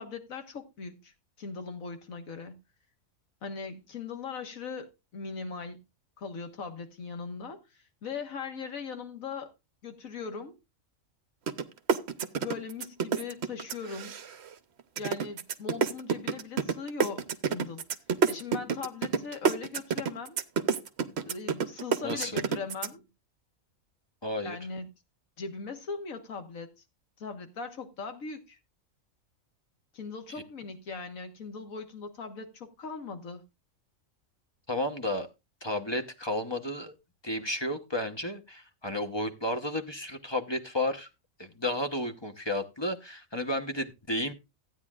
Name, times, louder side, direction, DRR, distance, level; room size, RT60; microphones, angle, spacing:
voice 1, 0.0-2.6 3.4-5.8 6.2-9.5 9.8-10.6 12.4-14.2 15.0-17.8 18.2-20.4 21.3-23.1 24.4-24.9 25.4-26.7 27.2-28.6 29.9-33.4, left 5 dB, 80° left, 1.8 m, -39 dB
sound 1, 11.5-11.6 11.9-14.5 15.0-22.9, right 6 dB, 55° right, 1.0 m, -28 dB
voice 2, 22.0-22.4 24.2-24.6 34.7-35.3 35.6-36.9 37.2-41.1 41.4-44.3, left 1 dB, 20° left, 0.9 m, -32 dB
15.5 x 9.2 x 2.4 m
omnidirectional pair, 1.4 m